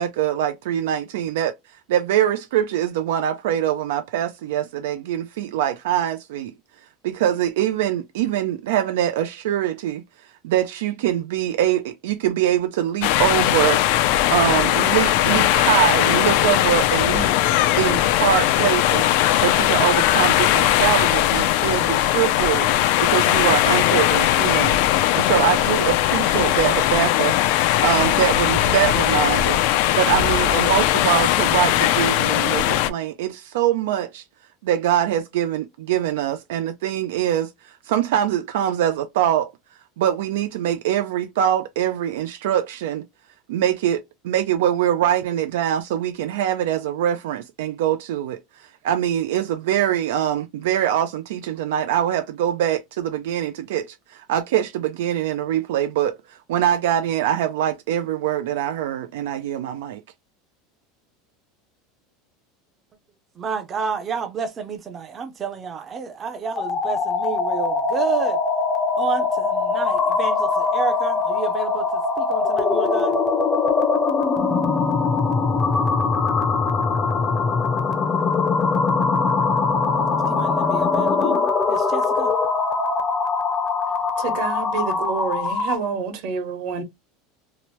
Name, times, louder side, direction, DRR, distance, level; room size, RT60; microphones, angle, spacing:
voice 1, 0.0-1.5 1.9-6.5 7.0-13.8 14.3-17.3 17.8-19.1 19.4-22.7 23.0-24.8 25.1-29.6 29.9-34.2 34.6-39.5 40.0-43.0 43.5-60.0, right 11 dB, 90° right, 0.3 m, -23 dB
sound 1, 13.0-32.9, left 13 dB, 65° left, 0.3 m, -19 dB
voice 2, 63.4-68.4 69.0-73.1 80.3-81.4 81.7-82.3, right 6 dB, 25° right, 0.5 m, -30 dB
sound 2, 66.5-85.9, left 4 dB, 20° left, 0.6 m, -22 dB
voice 3, 84.2-86.8, right 5 dB, 60° right, 1.0 m, -28 dB
2.9 x 2.1 x 3.0 m
supercardioid pair, 155°, 0 cm